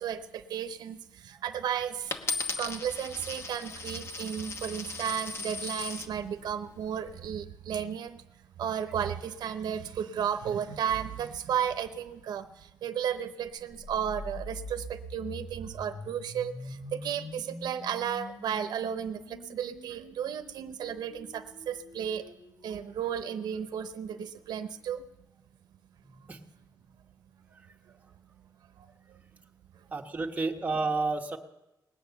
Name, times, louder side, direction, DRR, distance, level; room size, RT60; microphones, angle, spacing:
voice 1, 0.0-2.1 2.6-8.2 8.6-22.3 22.6-25.0 28.8-28.9, right 8 dB, 80° right, 10 dB, 0.7 m, -34 dB
Coin (dropping), 2.1-6.1 6.8-7.2, left 4 dB, 40° left, 1.2 m, -37 dB
sound 1, 13.7-23.5, left 1 dB, 85° left, 5.6 m, -45 dB
voice 2, 29.9-31.4, right 3 dB, 20° right, 3 dB, 1.1 m, -30 dB
19.5 x 9.0 x 6.9 m, 0.95 s
cardioid pair, 130°, 7 cm